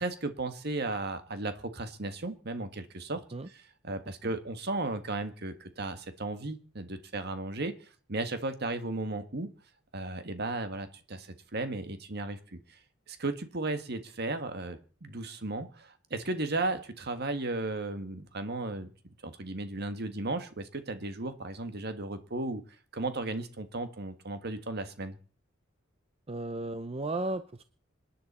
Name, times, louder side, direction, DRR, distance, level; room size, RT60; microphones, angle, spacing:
voice 1, 0.0-3.2 3.8-9.5 9.9-12.8 13.1-18.9 19.2-22.6 22.9-25.2, right 2 dB, 55° right, 9 dB, 1.6 m, -35 dB
voice 2, 26.3-27.6, right 2 dB, 30° right, 11 dB, 0.6 m, -34 dB
26.5 x 10.0 x 4.3 m, 0.40 s
head